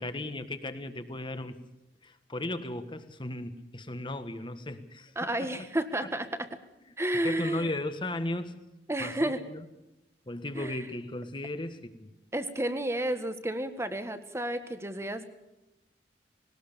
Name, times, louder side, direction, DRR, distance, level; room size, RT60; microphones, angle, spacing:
voice 1, 0.0-1.6 2.0-5.1 5.4-5.5 7.2-8.5 9.0-9.6 10.3-12.1, left 1 dB, 30° left, 10 dB, 1.5 m, -36 dB
voice 2, 5.1-6.5 7.0-7.7 8.9-9.4 10.5-10.8 12.3-15.2, right 1 dB, 15° right, 9 dB, 1.5 m, -31 dB
20.0 x 19.0 x 6.8 m, 0.97 s
head